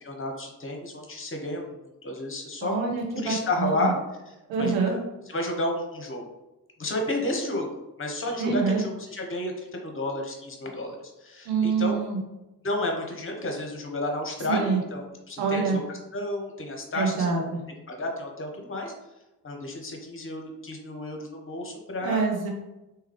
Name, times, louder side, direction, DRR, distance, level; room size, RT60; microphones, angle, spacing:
voice 1, 0.0-1.8 2.0-2.7 3.1-5.0 5.3-6.2 6.8-12.0 12.6-17.3 17.9-18.9 19.4-22.3, left 1 dB, 25° left, 2 dB, 0.8 m, -31 dB
voice 2, 2.6-3.9 4.5-5.0 8.4-8.8 11.5-12.2 14.5-14.8 15.4-15.8 16.9-17.6 22.0-22.5, right 5 dB, 65° right, 1 dB, 1.0 m, -26 dB
3.7 x 2.9 x 3.0 m, 0.99 s
figure-of-eight pair, 45°, 48 cm